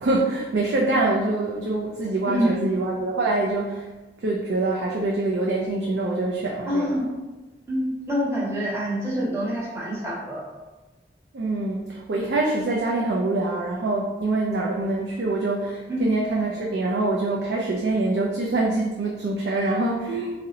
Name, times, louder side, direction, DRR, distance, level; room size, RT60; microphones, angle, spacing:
voice 1, 0.0-3.9 4.2-6.9 11.3-20.4, right 2 dB, 75° right, -2 dB, 0.4 m, -25 dB
voice 2, 2.2-2.6 6.7-7.0 7.7-10.4 15.9-16.1, equal, 15° right, -6 dB, 0.7 m, -26 dB
2.8 x 2.0 x 3.7 m, 1.2 s
head